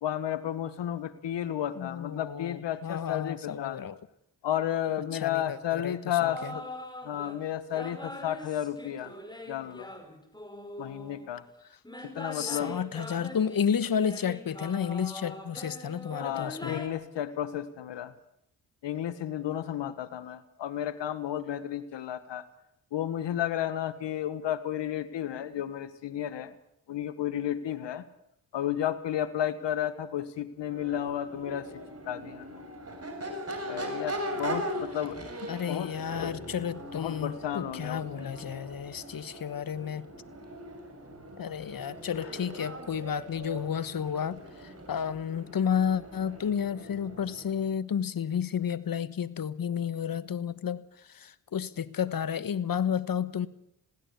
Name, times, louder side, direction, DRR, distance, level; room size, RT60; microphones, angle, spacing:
voice 1, 0.0-3.8 4.4-6.7 7.0-9.1 9.5-9.9 10.8-11.4 12.0-12.8 16.2-18.1 18.8-22.4 22.9-26.5 26.9-28.0 28.5-31.7 32.1-32.6 33.7-35.2 35.7-35.9 36.2-36.3 36.9-38.3 42.2-42.3, left 11 dB, 75° left, 13 dB, 1.6 m, -32 dB
voice 2, 1.8-4.0 5.1-6.5 12.3-16.8 35.5-40.1 41.4-53.5, left 8 dB, 50° left, 16 dB, 1.4 m, -32 dB
sound 1, 6.2-7.4 7.7-11.3 11.8-16.9, left 1 dB, 10° left, 5.5 m, -42 dB
Crowd / Race car auto racing / Accelerating revving vroom, 30.6-47.7, right 1 dB, 35° right, 6.3 m, -40 dB
21.5 x 16.5 x 8.2 m, 0.75 s
cardioid pair, 60°, 44 cm